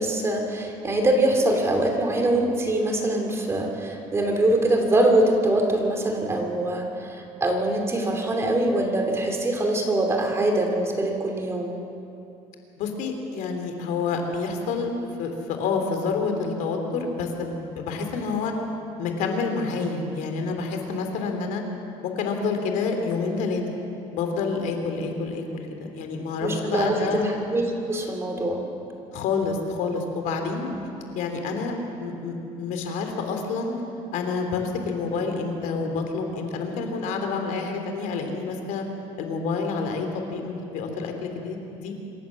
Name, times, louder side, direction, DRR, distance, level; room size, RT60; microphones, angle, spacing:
voice 1, 0.0-11.8 26.4-28.6 30.5-30.9, right 1 dB, 20° right, 2 dB, 2.7 m, -23 dB
voice 2, 12.8-14.9 15.2-18.5 19.0-21.6 22.0-23.6 24.1-27.3 29.1-30.7 31.1-31.7 32.0-33.7 34.1-38.8 39.2-41.9, left 4 dB, 75° left, 4 dB, 3.1 m, -28 dB
25.5 x 15.5 x 7.4 m, 2.7 s
cardioid pair, 150°, 13 cm